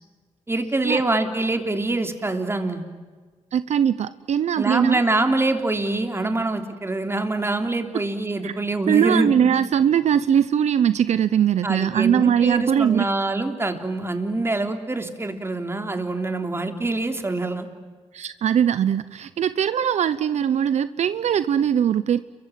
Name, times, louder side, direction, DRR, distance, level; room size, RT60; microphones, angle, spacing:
voice 1, 0.5-2.8 4.6-9.6 11.6-17.7, right 2 dB, 20° right, 6 dB, 3.3 m, -25 dB
voice 2, 3.5-5.0 8.4-8.5 8.9-13.1 18.1-22.2, right 9 dB, 75° right, 14 dB, 0.8 m, -21 dB
29.5 x 23.5 x 7.7 m, 1.5 s
cardioid pair, 85°, 12 cm